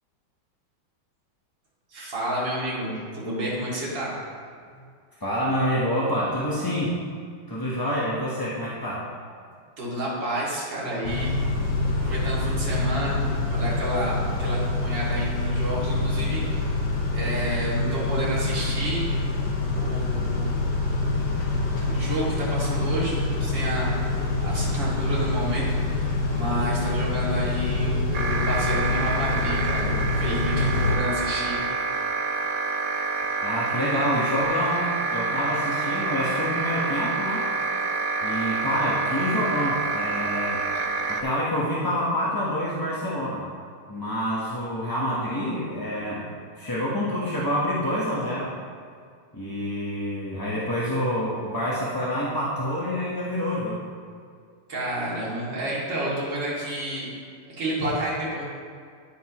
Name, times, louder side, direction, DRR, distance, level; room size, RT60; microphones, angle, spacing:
voice 1, 1.9-4.1 9.8-11.3 12.0-13.2 13.5-16.6 17.1-19.0 19.8-20.5 21.8-23.9 24.4-25.8 26.3-31.6 54.7-57.1 57.6-58.4, right 1 dB, 55° right, -7 dB, 3.0 m, -30 dB
voice 2, 5.2-7.0 7.5-9.1 30.8-31.0 33.4-37.5 38.2-40.7 41.1-43.5 43.9-46.3 46.6-48.5 49.3-53.8, equal, 20° left, -7 dB, 0.5 m, -27 dB
Car / Idling / Accelerating revving vroom, 11.0-31.0, left 2 dB, 60° left, 1.7 m, -26 dB
sound 1, 28.1-41.2, right 4 dB, 75° right, 0.8 m, -28 dB
9.9 x 9.0 x 3.0 m, 2.1 s
omnidirectional pair, 2.4 m